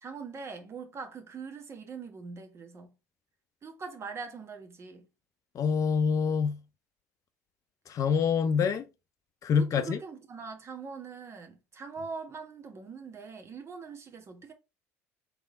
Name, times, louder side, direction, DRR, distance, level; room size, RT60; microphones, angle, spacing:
voice 1, 0.0-2.9 3.6-5.1 9.6-14.5, right 5 dB, 35° right, 1.3 m, -42 dB
voice 2, 5.5-6.6 7.9-8.9 9.4-10.0, left 6 dB, 45° left, 0.7 m, -26 dB
3.6 x 3.4 x 3.7 m
hypercardioid pair, 65°, 8 cm